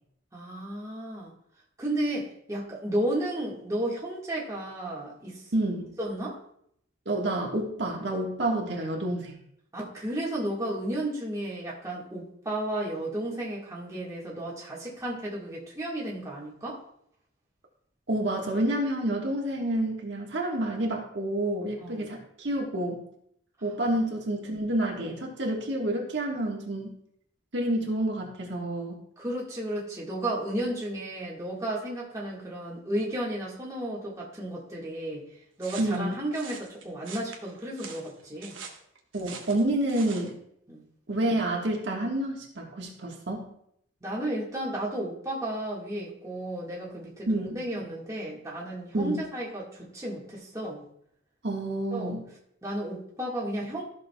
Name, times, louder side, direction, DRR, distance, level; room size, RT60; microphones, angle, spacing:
voice 1, 0.3-1.3 1.8-5.5 6.0-6.4 9.7-16.8 21.8-22.1 29.2-35.2 35.6-38.6 40.7-40.8 44.0-50.8 51.9-52.1 52.6-53.8, right 1 dB, 15° right, -5 dB, 1.6 m, -33 dB
voice 2, 5.5-6.0 7.0-9.4 18.1-23.1 23.6-27.0 27.5-29.0 35.8-36.2 39.1-40.4 41.1-43.5 47.3-47.6 48.9-49.2 51.4-52.2, right 1 dB, 65° right, -1 dB, 1.5 m, -29 dB
sound 1, 35.6-40.3, right 6 dB, 85° right, 1.1 m, -44 dB
13.5 x 6.4 x 2.3 m, 0.71 s
head